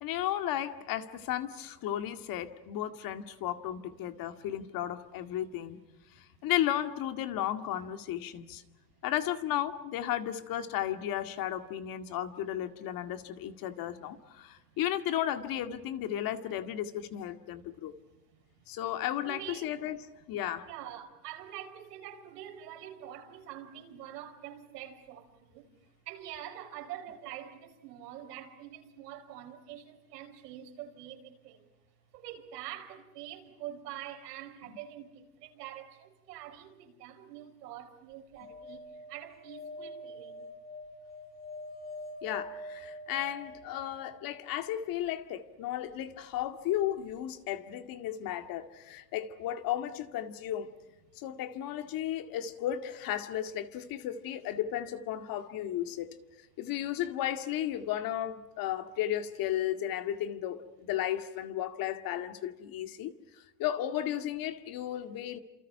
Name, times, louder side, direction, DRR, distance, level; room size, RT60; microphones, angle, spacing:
voice 1, 0.0-5.8 6.4-8.6 9.0-17.9 18.7-20.0 20.3-20.7 42.2-50.7 51.2-56.1 56.6-63.1 63.6-65.4, left 11 dB, 45° left, 2.1 m, -34 dB
voice 2, 6.1-6.5 14.6-14.7 17.9-18.2 18.5-18.7 19.3-19.7 20.6-25.7 26.1-31.7 32.1-40.5, right 11 dB, 80° right, 5.5 m, -45 dB
sound 1, 38.4-44.5 46.8-46.9 47.1-47.2, left 1 dB, 20° left, 2.6 m, -45 dB
30.0 x 27.5 x 5.7 m
supercardioid pair, 125°, 47 cm